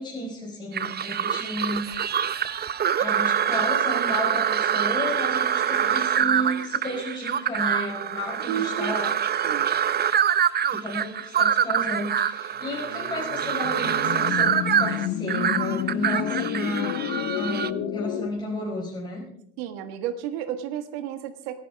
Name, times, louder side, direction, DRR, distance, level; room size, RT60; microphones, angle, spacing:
voice 1, 0.0-1.9 2.9-9.1 10.7-19.3, left 1 dB, 15° left, -4 dB, 5.0 m, -32 dB
sound 1, 0.7-17.7, right 8 dB, 30° right, 0.8 m, -25 dB
voice 2, 8.4-9.0 9.4-9.7 19.6-21.6, right 10 dB, 80° right, 7 dB, 1.6 m, -32 dB
sound 2, 12.8-18.3, left 11 dB, 65° left, 1.3 m, -30 dB
27.0 x 10.0 x 3.5 m, 0.68 s
supercardioid pair, 85°, 30 cm